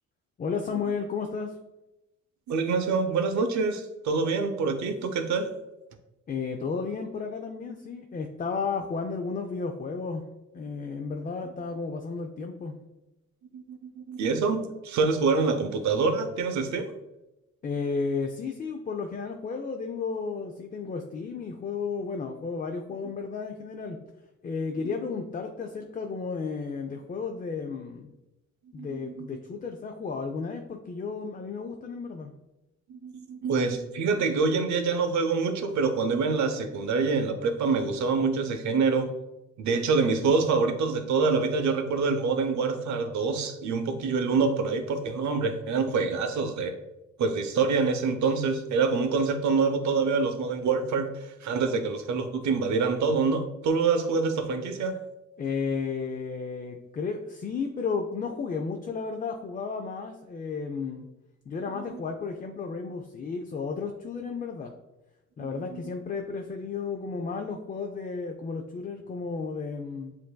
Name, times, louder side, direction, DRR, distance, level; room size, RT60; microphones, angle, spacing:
voice 1, 0.4-1.6 6.3-10.2 10.5-12.7 17.6-24.0 24.4-28.1 28.7-32.3 55.4-61.1 61.5-64.7 65.4-70.2, left 5 dB, 30° left, 4 dB, 0.4 m, -33 dB
voice 2, 2.5-5.5 13.5-16.9 28.8-29.4 32.9-39.1 39.6-46.7 47.2-51.1 51.4-55.0 61.8-62.0 65.4-65.8, right 4 dB, 70° right, 7 dB, 0.7 m, -26 dB
7.4 x 2.7 x 2.2 m, 0.97 s
cardioid pair, 90°, 30 cm